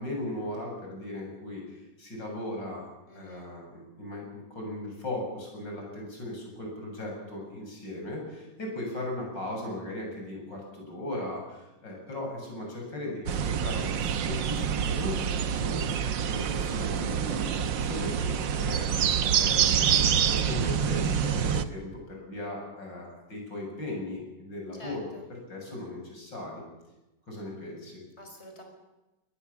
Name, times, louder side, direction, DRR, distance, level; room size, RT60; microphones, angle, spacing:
voice 1, 0.0-2.9 3.1-19.0 19.3-25.0 25.5-26.6 27.3-28.0, left 1 dB, 80° left, 0 dB, 8.1 m, -37 dB
voice 2, 3.1-3.5 24.7-25.2 28.2-28.6, equal, 35° left, 3 dB, 5.5 m, -47 dB
sound 1, 13.3-21.7, right 8 dB, 85° right, 1.8 m, -27 dB
22.5 x 19.5 x 7.1 m, 1.0 s
omnidirectional pair, 1.9 m